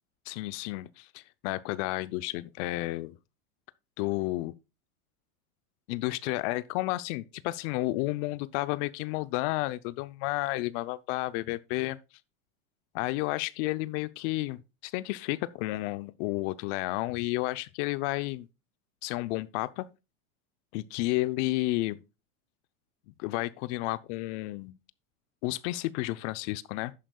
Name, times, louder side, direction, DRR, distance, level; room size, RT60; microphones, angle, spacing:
voice 1, 0.3-3.1 4.0-4.5 5.9-12.0 12.9-18.5 19.0-19.9 20.7-22.0 23.2-24.8 25.4-26.9, left 19 dB, 55° left, 0.7 m, -31 dB
11.5 x 8.8 x 2.3 m
hypercardioid pair, 105°, 43 cm